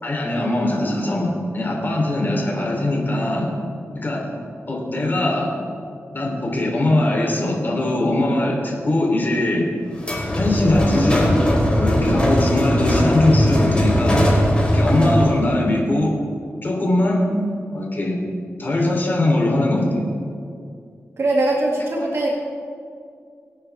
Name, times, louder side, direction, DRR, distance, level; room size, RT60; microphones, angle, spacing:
voice 1, 0.0-3.5 3.9-4.2 4.7-5.5 6.1-9.7 10.4-11.4 11.8-14.3 14.7-16.1 16.6-17.3 17.7-18.2 18.6-20.0, left 1 dB, 40° left, -2 dB, 3.6 m, -21 dB
sound 1, 10.0-15.4, equal, 20° left, 3.8 m, -19 dB
voice 2, 21.2-22.3, right 2 dB, 60° right, -3 dB, 2.6 m, -21 dB
25.0 x 8.8 x 3.6 m, 2.3 s
wide cardioid pair, 95°, 5 cm